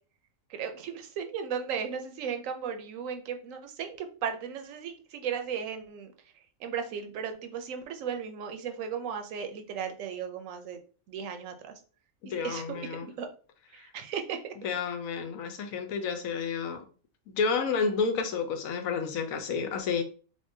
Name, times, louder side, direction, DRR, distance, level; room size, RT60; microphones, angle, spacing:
voice 1, 0.5-6.1 6.6-10.8 11.1-11.7 12.2-13.3 13.7-14.4, right 7 dB, 70° right, 1.0 m, -36 dB
voice 2, 12.3-13.1 13.7-13.9 14.6-16.8 17.3-20.0, left 5 dB, 75° left, 1.1 m, -30 dB
3.6 x 3.4 x 2.6 m
omnidirectional pair, 1.5 m